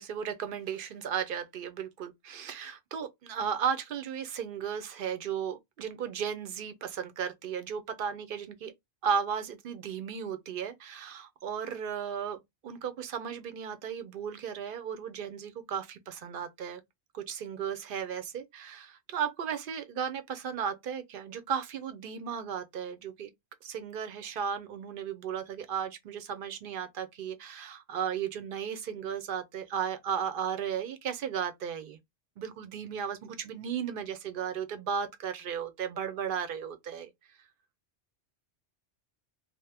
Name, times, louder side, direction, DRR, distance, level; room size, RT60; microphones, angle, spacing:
voice 1, 0.0-8.7 9.0-16.8 17.1-23.3 23.6-32.0 32.4-37.1, right 7 dB, 60° right, 0.7 m, -35 dB
2.8 x 2.1 x 3.3 m
omnidirectional pair, 1.1 m